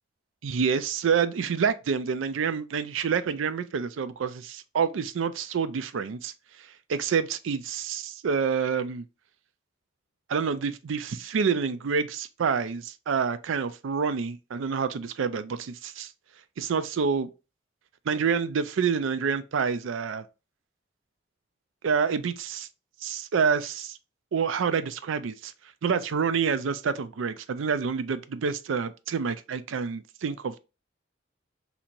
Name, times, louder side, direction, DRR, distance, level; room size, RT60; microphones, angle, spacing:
voice 1, 0.4-6.3 6.9-9.0 10.3-16.1 16.6-17.3 18.1-20.3 21.8-22.7 23.0-24.0 24.3-25.5 25.8-30.6, right 6 dB, 85° right, 0.4 m, -27 dB
4.3 x 2.8 x 2.6 m
head